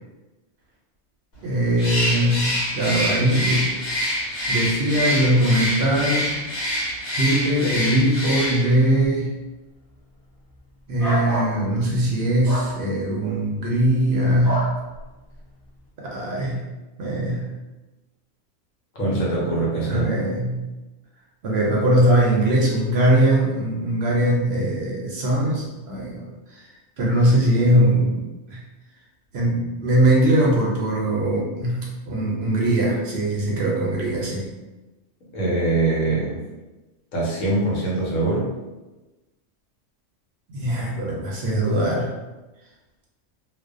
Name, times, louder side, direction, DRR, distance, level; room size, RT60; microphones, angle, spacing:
voice 1, 1.4-3.7 4.5-6.5 7.1-9.3 10.9-14.6 16.0-16.6 17.0-17.4 19.9-20.6 21.4-26.3 26.5-26.6 27.0-28.2 28.5-28.6 29.3-34.4 40.5-42.1, right 1 dB, 65° right, -3 dB, 0.7 m, -21 dB
Bird, 1.8-8.8, equal, 65° left, 1.2 m, -26 dB
sound 1, 11.0-11.5 12.4-12.7 14.4-14.7, equal, 20° left, 0.7 m, -26 dB
voice 2, 18.9-20.1 35.3-36.4 37.1-38.5, right 2 dB, 85° left, -4 dB, 1.2 m, -23 dB
2.5 x 2.1 x 2.4 m, 1.1 s
omnidirectional pair, 1.3 m